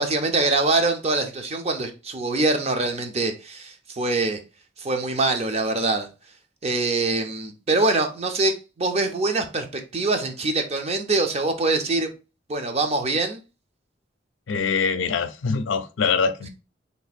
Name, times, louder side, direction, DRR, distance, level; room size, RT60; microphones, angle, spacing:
voice 1, 0.0-4.4 4.8-6.1 6.6-12.1 12.5-13.4, right 3 dB, 35° right, 0.6 m, -24 dB
voice 2, 14.5-16.5, left 5 dB, 80° left, 0.4 m, -24 dB
3.3 x 2.5 x 4.1 m
head